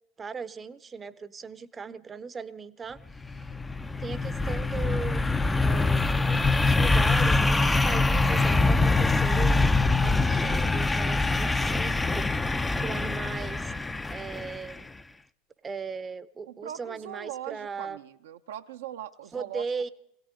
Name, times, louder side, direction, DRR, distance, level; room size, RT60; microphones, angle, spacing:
voice 1, 0.2-3.0 3.3-3.4 4.0-5.2 5.6-9.7 10.0-13.7 14.1-14.9 15.6-18.0 19.3-19.9, right 5 dB, 25° right, 15 dB, 0.7 m, -38 dB
sound 1, 3.1-14.8, left 3 dB, 15° left, 0.5 m, -24 dB
Bowed string instrument, 10.6-13.7, left 10 dB, 50° left, 1.7 m, -55 dB
voice 2, 16.5-19.7, right 11 dB, 75° right, 7 dB, 0.7 m, -40 dB
22.5 x 17.0 x 3.7 m, 0.74 s
hypercardioid pair, 85°, 0 cm